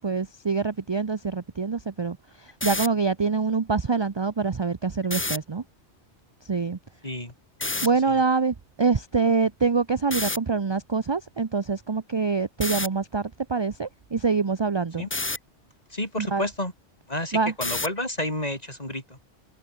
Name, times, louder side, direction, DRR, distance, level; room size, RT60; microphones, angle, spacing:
voice 1, 0.0-5.6 6.4-6.8 7.8-15.1 16.2-16.5 17.3-17.5, right 4 dB, 30° right, 0.6 m, -25 dB
sound 1, 2.5-2.9 5.0-5.4 7.6-7.9 10.1-10.4 12.6-12.9 15.1-15.4 17.6-18.0, left 2 dB, 15° left, 0.4 m, -28 dB
voice 2, 15.9-16.7 17.1-19.2, left 1 dB, 30° left, 6.3 m, -30 dB
omnidirectional pair, 1.2 m